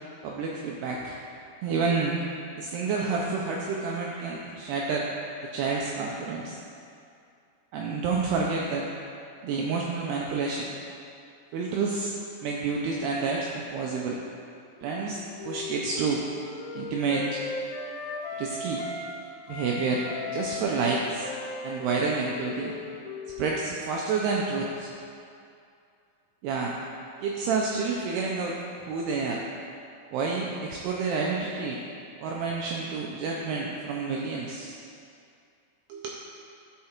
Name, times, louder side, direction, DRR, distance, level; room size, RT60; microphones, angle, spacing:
voice 1, 0.2-1.2 1.6-2.3 2.6-5.1 5.4-6.6 7.7-8.9 9.4-10.7 11.5-12.1 12.4-14.2 14.8-16.3 16.7-17.4 18.4-18.8 19.5-21.3 21.6-22.7 23.4-24.9 26.4-26.7 27.2-29.4 30.1-31.8 32.2-34.8 35.9-36.1, right 4 dB, 85° right, -2 dB, 2.3 m, -29 dB
Wind instrument woodwind instrument, 14.8-19.2 19.5-24.0, left 3 dB, 85° left, 2.9 m, -38 dB
13.0 x 4.8 x 4.4 m, 2.5 s
omnidirectional pair, 5.4 m